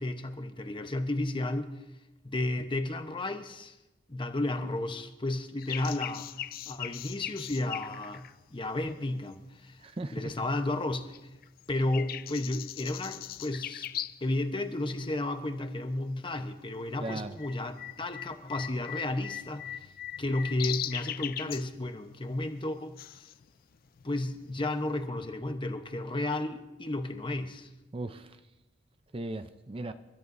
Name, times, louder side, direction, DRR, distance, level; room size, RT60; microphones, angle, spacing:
voice 1, 0.0-1.7 2.2-3.8 4.1-9.8 10.1-11.3 11.7-13.9 14.2-19.9 20.2-23.3 24.0-27.7, left 2 dB, 25° left, 0.9 m, -33 dB
sound 1, 5.6-9.6 10.1-10.9 11.1-14.3 14.6-14.7 15.4-15.8 16.1-25.1, left 12 dB, 50° left, 0.4 m, -40 dB
voice 2, 9.8-10.3 17.0-17.4 27.9-28.4 29.1-29.9, right 2 dB, 30° right, 0.5 m, -37 dB
29.5 x 13.5 x 2.7 m
head